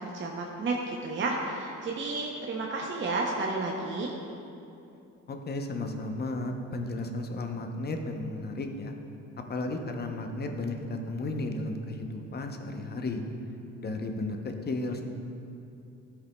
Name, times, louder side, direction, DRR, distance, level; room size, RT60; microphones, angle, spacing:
voice 1, 0.0-4.1, right 3 dB, 40° right, -1 dB, 0.7 m, -31 dB
voice 2, 5.3-8.9 9.5-13.2 13.8-15.0, left 2 dB, 35° left, 4 dB, 0.7 m, -34 dB
12.5 x 4.9 x 2.2 m, 2.7 s
cardioid pair, 90°, 30 cm